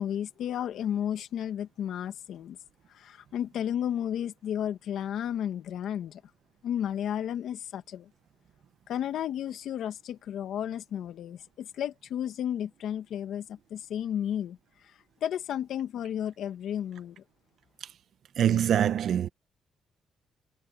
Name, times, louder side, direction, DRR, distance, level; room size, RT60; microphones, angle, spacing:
voice 1, 0.0-2.6 2.9-6.2 6.6-8.1 8.9-14.6 15.2-17.2, left 10 dB, 75° left, 1.9 m, -33 dB
voice 2, 18.4-19.3, right 9 dB, 65° right, 1.2 m, -24 dB
cardioid pair, 90°, 0 cm